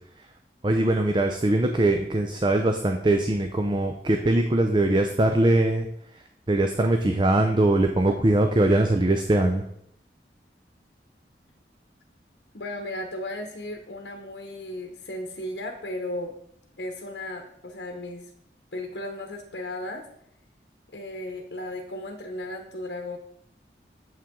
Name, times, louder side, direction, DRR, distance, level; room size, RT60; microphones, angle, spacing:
voice 1, 0.6-5.9 6.5-9.6, right 1 dB, 25° right, 5 dB, 0.5 m, -22 dB
voice 2, 12.5-16.3 16.8-18.3 18.7-20.1 20.9-23.2, left 1 dB, 65° left, 3 dB, 1.0 m, -35 dB
8.8 x 7.4 x 3.7 m, 0.70 s
head